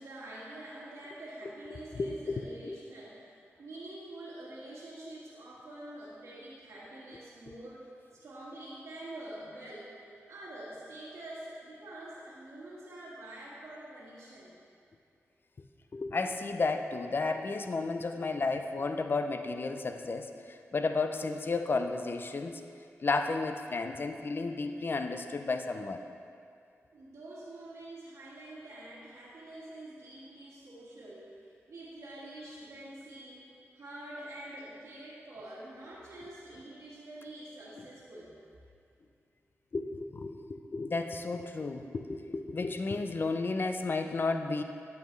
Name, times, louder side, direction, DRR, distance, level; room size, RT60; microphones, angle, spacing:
voice 1, 0.0-3.3 3.6-7.8 8.1-9.9 10.3-14.6 26.9-38.3, right 1 dB, 80° right, -7 dB, 1.6 m, -46 dB
voice 2, 2.0-2.8 15.9-22.6 23.0-26.0 39.7-44.6, left 3 dB, 45° left, 7 dB, 0.5 m, -33 dB
9.3 x 7.1 x 3.2 m, 2.4 s
cardioid pair, 70°, 5 cm